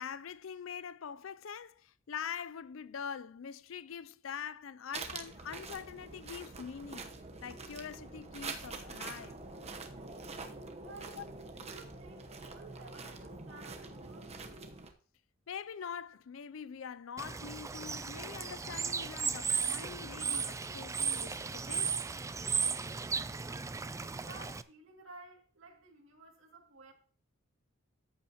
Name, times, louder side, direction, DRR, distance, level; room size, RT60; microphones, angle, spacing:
voice 1, 0.0-7.1 7.4-9.4 11.2-11.3 15.5-21.9, left 7 dB, 65° left, 0.5 m, -44 dB
sound 1, 4.9-14.9, right 3 dB, 30° right, 1.0 m, -45 dB
voice 2, 10.8-11.2 11.5-14.8 24.0-26.9, right 2 dB, 70° right, 2.5 m, -54 dB
Bird / Water, 17.2-24.6, right 5 dB, 15° right, 0.3 m, -35 dB
14.0 x 8.2 x 3.0 m
head